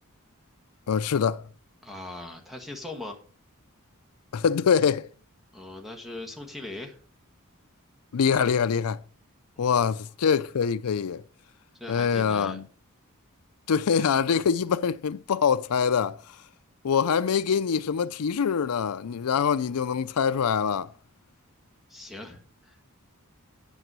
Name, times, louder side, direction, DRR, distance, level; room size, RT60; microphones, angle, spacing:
voice 1, 0.9-1.4 4.3-5.1 8.1-9.0 9.6-11.2 11.9-12.6 13.7-16.2 16.8-20.9, left 6 dB, 85° left, 0.5 m, -24 dB
voice 2, 1.8-3.2 5.5-7.0 9.5-10.0 11.7-12.6 21.9-23.0, left 2 dB, ahead, 1.3 m, -40 dB
11.0 x 6.9 x 6.2 m
head